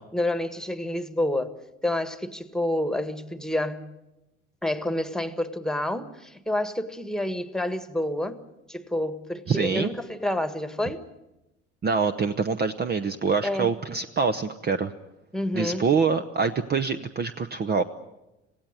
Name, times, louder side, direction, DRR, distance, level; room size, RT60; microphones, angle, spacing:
voice 1, 0.1-1.6 1.8-3.9 4.6-8.4 8.7-11.0 13.4-13.8 15.3-15.9, left 1 dB, ahead, 1.6 m, -28 dB
voice 2, 9.5-9.9 11.8-14.9 15.5-17.8, right 5 dB, 30° right, 0.9 m, -25 dB
26.5 x 17.0 x 9.5 m
figure-of-eight pair, 60°, 35 cm